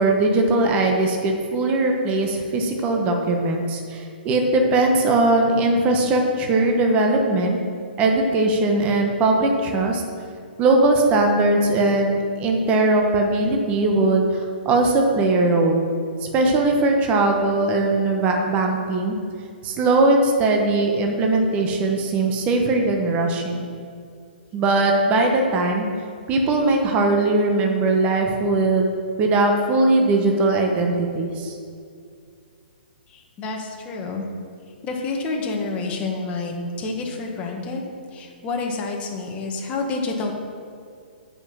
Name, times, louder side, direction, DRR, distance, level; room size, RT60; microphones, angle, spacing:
voice 1, 0.0-7.6 8.0-10.0 10.6-15.8 16.3-19.2 19.6-23.7 24.5-25.9 26.3-28.9 29.2-31.6, right 2 dB, 25° right, 2 dB, 1.0 m, -20 dB
voice 2, 33.1-34.3 34.8-40.3, left 3 dB, 20° left, 0 dB, 1.3 m, -29 dB
7.2 x 5.4 x 7.4 m, 2.3 s
hypercardioid pair, 145°, 6 cm